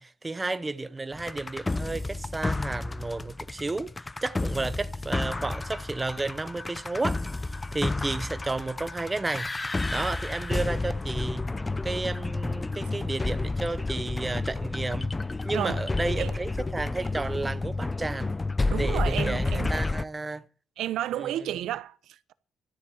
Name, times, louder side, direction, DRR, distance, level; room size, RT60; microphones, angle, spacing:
voice 1, 0.0-3.9 4.2-7.2 7.5-9.5 9.9-15.1 15.4-18.3 18.8-20.4 21.2-21.3, right 3 dB, 20° right, 0.7 m, -32 dB
sound 1, 1.1-20.0, left 2 dB, 20° left, 0.5 m, -31 dB
voice 2, 15.5-15.9 16.2-16.3 18.7-19.7 20.8-22.3, right 12 dB, 80° right, 0.9 m, -32 dB
13.0 x 7.7 x 8.7 m
cardioid pair, 90°, 0 cm